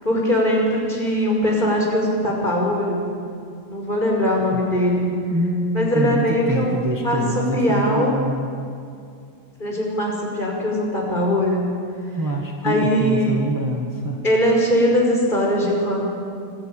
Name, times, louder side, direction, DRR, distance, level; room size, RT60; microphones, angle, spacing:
voice 1, 0.0-3.1 3.7-5.1 5.7-7.2 7.5-8.2 9.6-11.6 12.6-13.4 14.2-16.1, equal, 35° left, -2 dB, 6.0 m, -21 dB
voice 2, 5.3-8.5 12.2-14.2, right 1 dB, 15° right, 0 dB, 1.7 m, -25 dB
25.0 x 16.0 x 9.1 m, 2.3 s
omnidirectional pair, 1.5 m